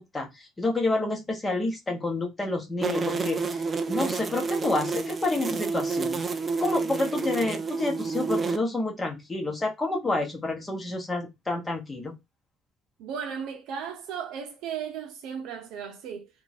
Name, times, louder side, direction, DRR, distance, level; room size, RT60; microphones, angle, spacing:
voice 1, 0.0-3.6 3.9-6.2 6.6-12.1, left 2 dB, 15° left, 0.9 m, -29 dB
sound 1, 2.8-8.6, right 4 dB, 20° right, 0.3 m, -29 dB
voice 2, 13.0-16.4, right 7 dB, 70° right, 0.6 m, -36 dB
2.6 x 2.3 x 3.9 m
cardioid pair, 165°, 0 cm